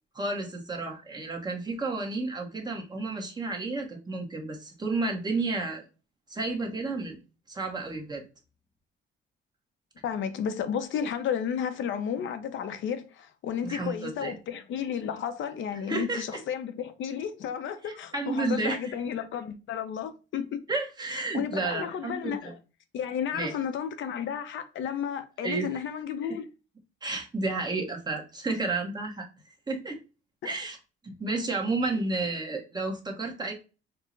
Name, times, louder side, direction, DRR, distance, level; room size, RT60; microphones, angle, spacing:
voice 1, 0.1-5.8 6.3-7.2 7.5-8.2 13.6-14.3 15.9-16.2 17.8-18.9 20.7-22.5 23.3-23.5 25.4-25.7 27.0-29.3 29.7-30.0 30.4-30.8 31.0-33.5, right 3 dB, 20° right, 0.9 m, -31 dB
voice 2, 10.0-20.6 21.3-22.5 22.9-26.5 30.4-30.5, left 8 dB, 70° left, 0.6 m, -32 dB
4.4 x 2.1 x 3.7 m
cardioid pair, 130°, 21 cm